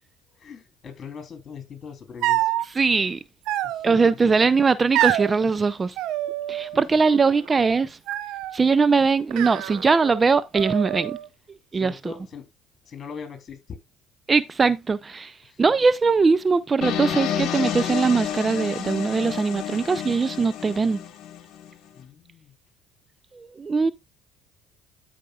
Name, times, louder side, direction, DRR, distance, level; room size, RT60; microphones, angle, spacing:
voice 1, 0.3-2.5 3.6-4.3 6.9-7.0 11.8-12.5 12.8-13.6 15.4-15.7 22.0-22.5, left 6 dB, 40° left, 3.4 m, -41 dB
sound 1, 2.2-2.7 3.5-4.1 4.9-5.3 6.0-6.8 7.1-7.6 8.1-8.6 9.3-10.2 10.5-11.3, right 14 dB, 70° right, 0.6 m, -27 dB
voice 2, 2.7-3.2 3.8-6.0 6.5-8.0 8.5-11.2 11.7-12.1 14.3-21.0 23.3-23.9, right 4 dB, 30° right, 0.5 m, -21 dB
sound 2, 16.8-21.7, left 9 dB, 65° left, 1.4 m, -30 dB
13.0 x 5.1 x 2.4 m
hypercardioid pair, 70°, 0 cm